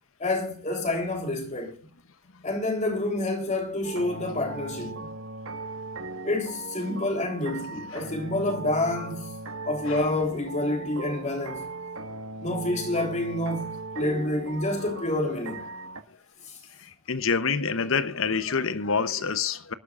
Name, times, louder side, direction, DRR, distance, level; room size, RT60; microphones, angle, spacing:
voice 1, 0.2-1.8 2.4-5.1 6.2-9.4 9.7-11.7 12.4-15.7 16.5-16.6, left 2 dB, 35° left, 3.5 m, -28 dB
sound 1, 3.8-16.0, right 2 dB, 85° right, 1.6 m, -38 dB
voice 2, 16.8-19.7, left 5 dB, 70° left, 0.9 m, -27 dB
25.5 x 12.0 x 2.5 m
head